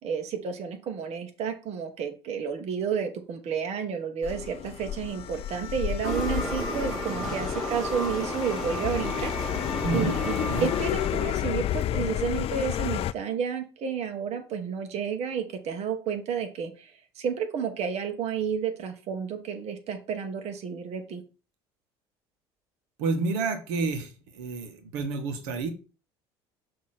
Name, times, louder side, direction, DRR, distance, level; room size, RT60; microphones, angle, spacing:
voice 1, 0.0-21.2, right 7 dB, 50° right, 6 dB, 1.1 m, -31 dB
sound 1, 4.2-13.1, left 12 dB, 45° left, 0.4 m, -31 dB
sound 2, 6.0-11.5, equal, ahead, 3.1 m, -33 dB
voice 2, 9.8-10.2 10.5-10.7 23.0-25.7, right 3 dB, 75° right, 7 dB, 1.1 m, -29 dB
6.2 x 2.9 x 5.7 m, 0.34 s
hypercardioid pair, 70°, 14 cm